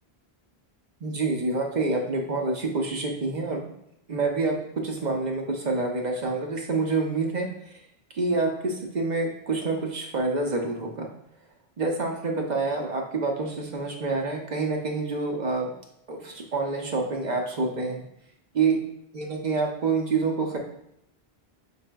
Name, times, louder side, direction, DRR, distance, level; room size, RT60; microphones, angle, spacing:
voice 1, 1.0-3.6 4.1-7.7 8.1-11.1 11.8-15.7 16.1-18.0 18.5-18.8 19.1-20.6, right 3 dB, 50° right, 1 dB, 0.7 m, -27 dB
6.0 x 3.4 x 2.2 m, 0.76 s
omnidirectional pair, 1.0 m